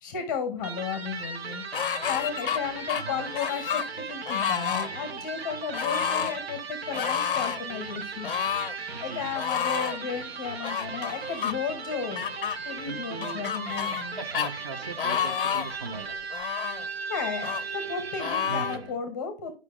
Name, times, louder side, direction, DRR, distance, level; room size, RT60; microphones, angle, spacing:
voice 1, 0.0-1.6 2.1-8.5 9.0-12.3 12.6-14.2 17.1-19.5, left 6 dB, 20° left, 0.7 m, -34 dB
Electric guitar, 0.6-19.0, right 4 dB, 70° right, 1.3 m, -37 dB
sound 1, 1.7-2.6 2.9-3.9 4.3-4.9 5.7-6.3 6.9-7.6 8.2-8.7 9.4-10.0 10.6-11.5 12.2-12.6 13.2-14.1 14.3-14.5 15.0-15.8 16.3-16.8 17.4-17.6 18.2-18.8, left 8 dB, 55° left, 0.6 m, -29 dB
voice 2, 2.9-3.3 8.9-9.4 12.8-13.5 13.9-16.2 18.4-18.8, right 3 dB, 25° right, 0.8 m, -39 dB
9.6 x 5.3 x 2.4 m
hypercardioid pair, 150°, 32 cm